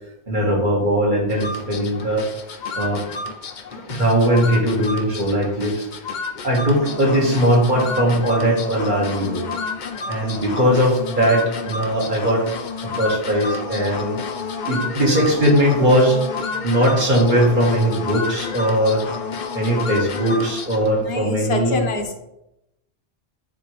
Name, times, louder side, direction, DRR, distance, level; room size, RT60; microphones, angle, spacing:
voice 1, 0.3-2.3 2.7-3.1 3.7-5.9 6.4-9.5 10.1-12.5 12.8-14.2 14.6-16.2 16.6-19.1 19.5-21.8, equal, 50° right, -2 dB, 1.7 m, -19 dB
sound 1, 1.3-21.0, left 4 dB, 50° left, 0.7 m, -30 dB
voice 2, 21.1-22.1, left 3 dB, 70° left, 3 dB, 1.1 m, -25 dB
10.5 x 3.5 x 3.2 m, 0.89 s
omnidirectional pair, 1.1 m